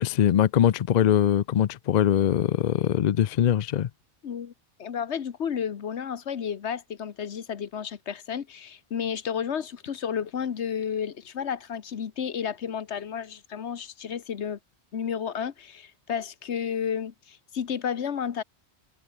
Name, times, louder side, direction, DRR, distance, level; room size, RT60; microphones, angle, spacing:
voice 1, 0.0-3.9, left 10 dB, 55° left, 0.5 m, -22 dB
voice 2, 4.2-4.5 4.8-14.6 14.9-18.4, left 7 dB, 85° left, 1.4 m, -32 dB
omnidirectional pair, 1.1 m